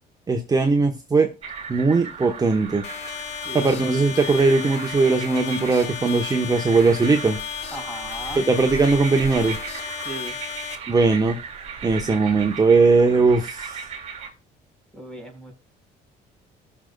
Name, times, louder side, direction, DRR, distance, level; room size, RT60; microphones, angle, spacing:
voice 1, 0.3-1.3 1.7-2.8 3.5-7.4 8.4-9.6 10.9-11.4 11.8-13.8, right 3 dB, 20° right, 4 dB, 1.2 m, -19 dB
Frogs-on-the-lake, 1.4-14.3, right 6 dB, 40° right, 2.7 m, -37 dB
sound 1, 2.8-10.8, left 9 dB, 80° left, 1.6 m, -34 dB
voice 2, 3.4-3.9 7.7-8.5 10.0-10.4 14.9-15.5, right 1 dB, 5° left, 4 dB, 4.4 m, -37 dB
19.0 x 6.6 x 2.3 m, 0.32 s
cardioid pair, 110°, 17 cm